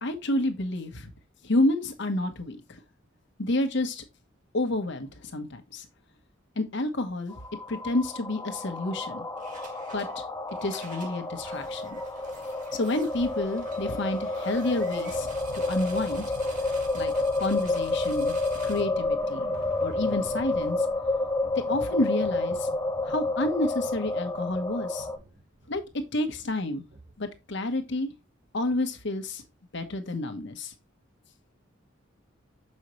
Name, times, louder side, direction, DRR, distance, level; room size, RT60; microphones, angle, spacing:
voice 1, 0.0-1.1 1.4-2.6 3.4-4.0 4.5-5.9 6.6-7.3 7.7-9.2 9.9-10.1 10.6-12.0 12.7-15.3 15.5-16.3 16.9-17.1 17.4-18.4 18.6-19.5 19.8-20.8 21.5-22.7 23.1-25.1 25.7-26.8 27.2-28.1 28.5-29.4 29.7-30.7, left 2 dB, 65° left, 1.2 m, -29 dB
sound 1, 7.3-25.2, left 2 dB, 15° left, 0.8 m, -30 dB
sound 2, 9.4-10.2 10.5-27.4, right 2 dB, 40° right, 1.6 m, -46 dB
6.6 x 5.4 x 3.1 m
head